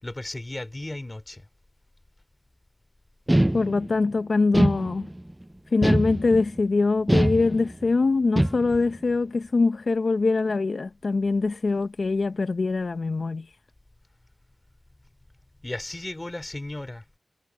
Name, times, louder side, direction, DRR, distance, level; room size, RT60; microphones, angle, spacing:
voice 1, 0.0-1.5 15.6-17.0, left 1 dB, 30° left, 3.3 m, -35 dB
sound 1, 3.3-4.1 4.5-5.3 5.8-6.6 7.1-7.9 8.4-9.0, right 1 dB, 15° right, 0.7 m, -23 dB
voice 2, 3.5-5.1 5.7-13.5, left 3 dB, 75° left, 0.8 m, -23 dB
wide cardioid pair, 60°, 0 cm